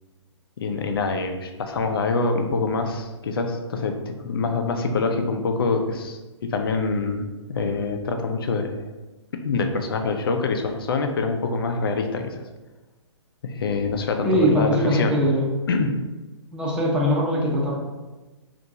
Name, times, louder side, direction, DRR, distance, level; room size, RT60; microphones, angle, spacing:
voice 1, 0.6-8.7 9.4-12.3 13.4-15.2 15.7-15.9, left 4 dB, 50° left, 5 dB, 0.5 m, -25 dB
voice 2, 14.3-15.5 16.5-17.7, equal, 5° right, -4 dB, 0.6 m, -21 dB
4.3 x 2.5 x 2.7 m, 1.2 s
figure-of-eight pair, 125°, 15 cm